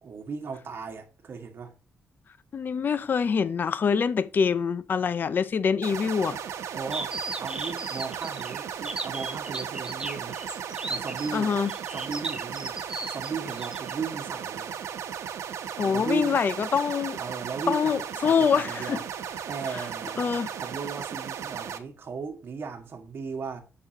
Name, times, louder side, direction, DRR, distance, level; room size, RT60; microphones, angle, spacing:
voice 1, 0.0-1.7 6.7-10.4 10.9-11.5 11.9-12.8 13.1-14.7 15.8-16.4 17.2-19.0 19.5-20.2 20.5-23.6, right 5 dB, 50° right, 1.7 m, -36 dB
voice 2, 2.5-6.4 11.3-11.7 15.8-17.2 17.7-19.0 19.7-19.8 20.2-20.5, left 6 dB, 45° left, 0.5 m, -25 dB
sound 1, 5.8-21.8, right 8 dB, 90° right, 0.9 m, -36 dB
sound 2, 6.9-13.9, right 2 dB, 15° right, 1.0 m, -36 dB
7.1 x 6.9 x 2.8 m
wide cardioid pair, 140°, 5 cm